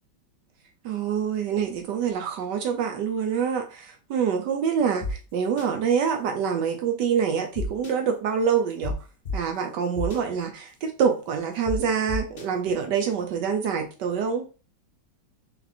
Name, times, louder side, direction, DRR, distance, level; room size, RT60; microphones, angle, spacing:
voice 1, 0.8-8.9 9.3-14.4, right 7 dB, 70° right, 4 dB, 1.2 m, -26 dB
sound 1, 5.0-5.1 5.6-5.7 7.5-7.9 8.8-8.9 9.2-9.3 10.0-10.2 11.7-11.8 12.1-12.4, left 4 dB, 45° left, 0.9 m, -30 dB
4.3 x 2.4 x 4.1 m, 0.35 s
omnidirectional pair, 2.1 m